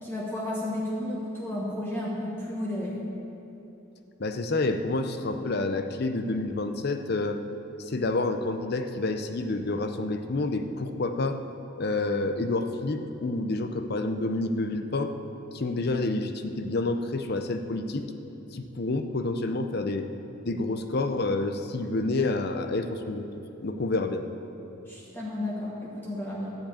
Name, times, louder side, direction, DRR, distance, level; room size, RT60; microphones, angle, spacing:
voice 1, 0.0-3.0 24.9-26.6, left 1 dB, 10° left, -6 dB, 1.2 m, -32 dB
voice 2, 4.2-7.4 7.9-11.4 11.8-15.1 15.5-18.1 18.5-20.1 20.5-23.2 23.6-24.2, left 2 dB, 50° left, 7 dB, 0.6 m, -28 dB
12.0 x 4.9 x 8.8 m, 3.0 s
head